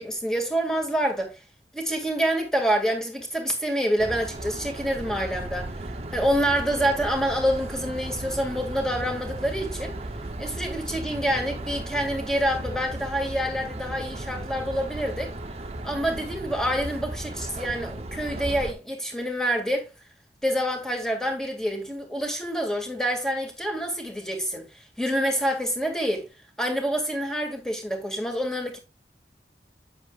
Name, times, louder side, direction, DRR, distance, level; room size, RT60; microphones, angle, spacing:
voice 1, 0.0-1.4 1.7-5.7 6.1-10.0 10.4-15.3 15.8-19.9 20.4-26.3 26.6-28.8, equal, 5° left, 2.2 m, -27 dB
sound 1, 4.0-18.7, right 1 dB, 35° right, 0.8 m, -35 dB
9.2 x 8.1 x 2.4 m
head